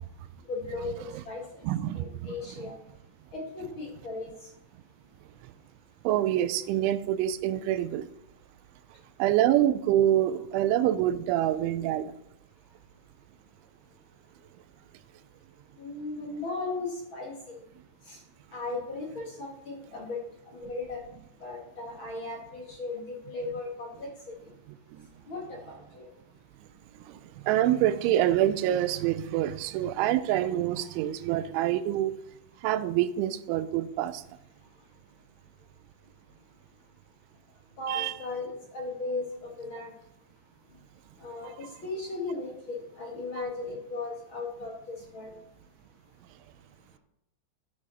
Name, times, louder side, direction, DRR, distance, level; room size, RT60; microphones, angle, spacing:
voice 1, 0.5-1.4 1.9-2.7 3.3-4.3 15.8-17.6 18.1-18.2 18.5-20.2 20.5-21.0 21.4-24.3 25.3-26.1 37.8-39.2 39.6-39.9 41.2-45.3, left 3 dB, 50° left, -2 dB, 1.5 m, -36 dB
voice 2, 1.6-2.7 6.0-8.1 9.2-12.1 27.1-27.2 27.5-32.1 32.6-34.2 37.9-38.1, right 12 dB, 85° right, 13 dB, 3.0 m, -26 dB
13.0 x 9.7 x 4.2 m, 0.79 s
omnidirectional pair, 5.3 m